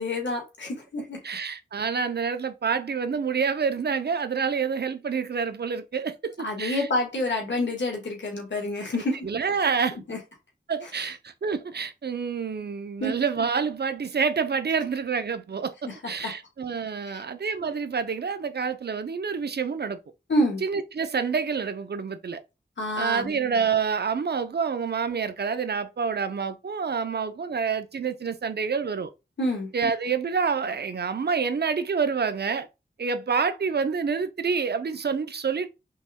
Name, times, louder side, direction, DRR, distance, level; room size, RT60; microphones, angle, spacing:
voice 1, 0.0-1.2 6.4-9.2 10.1-10.2 13.0-13.1 15.8-16.3 17.1-17.2 20.3-20.6 22.8-23.4 29.4-29.7, left 1 dB, 75° left, 1.7 m, -28 dB
voice 2, 1.2-6.9 9.2-10.0 10.7-20.0 20.6-22.4 23.0-29.1 29.7-32.7 33.0-35.7, right 5 dB, 60° right, 0.6 m, -27 dB
5.3 x 3.5 x 2.2 m
cardioid pair, 40°, 19 cm